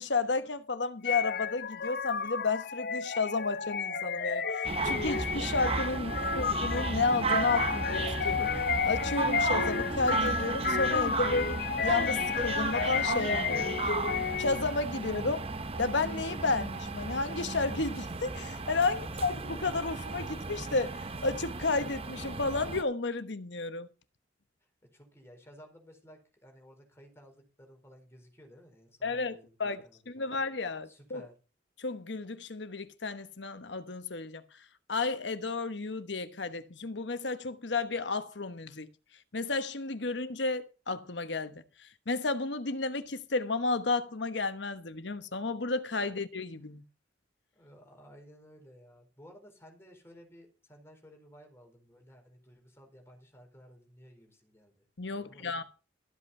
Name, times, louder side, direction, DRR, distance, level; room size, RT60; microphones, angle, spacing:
voice 1, 0.0-13.7 14.4-15.4 15.8-23.9 29.0-31.2 31.8-34.4 34.9-38.9 39.3-46.8 55.0-55.6, left 3 dB, 70° left, 1.1 m, -32 dB
sound 1, 1.0-14.7, left 5 dB, 55° left, 0.8 m, -32 dB
sound 2, 4.6-22.8, right 3 dB, 30° right, 0.9 m, -35 dB
voice 2, 6.0-6.4 18.9-19.2 24.9-30.4 30.8-31.3 47.5-54.8 55.1-55.6, equal, 15° left, 4.4 m, -56 dB
14.0 x 8.2 x 5.5 m
head